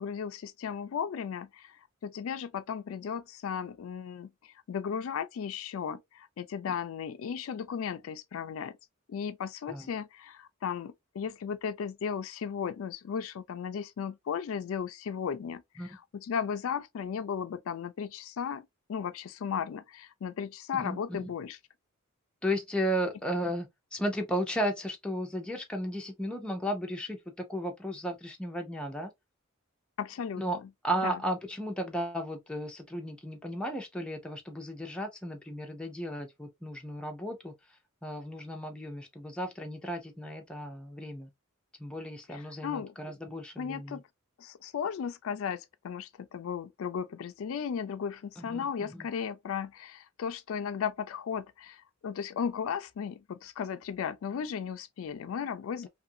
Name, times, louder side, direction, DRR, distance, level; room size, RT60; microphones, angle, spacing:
voice 1, 0.0-8.8 9.1-21.6 30.0-30.7 31.0-31.2 42.3-42.9 43.6-44.0 44.4-55.9, left 7 dB, 70° left, 0.3 m, -35 dB
voice 2, 20.8-21.3 22.4-29.1 30.4-30.6 30.8-37.5 38.0-41.3 41.8-44.0 48.4-49.1, equal, 5° left, 0.5 m, -34 dB
2.6 x 2.5 x 2.7 m
head